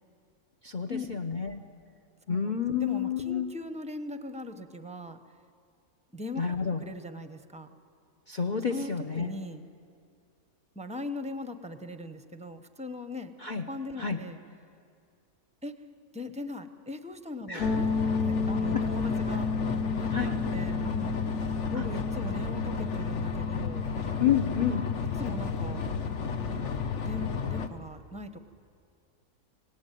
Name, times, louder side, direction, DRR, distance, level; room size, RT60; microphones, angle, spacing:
voice 1, 0.6-1.6 2.3-3.5 6.4-6.8 8.3-9.3 13.4-13.6 14.0-14.2 17.5-17.8 18.7-18.8 20.1-20.3 21.7-21.8 24.2-24.8, left 7 dB, 35° left, 7 dB, 0.9 m, -29 dB
voice 2, 2.8-5.2 6.1-6.5 6.8-7.7 8.7-9.7 10.7-13.4 13.7-14.4 15.6-15.8 16.1-17.9 18.2-19.5 20.0-23.9 25.2-25.9 27.0-28.4, left 2 dB, 5° right, 9 dB, 0.8 m, -39 dB
sound 1, 17.6-27.3, left 4 dB, 80° left, 2.2 m, -34 dB
sound 2, 17.6-27.7, left 5 dB, 55° left, 1.3 m, -32 dB
26.0 x 18.0 x 9.2 m, 2.3 s
omnidirectional pair, 1.6 m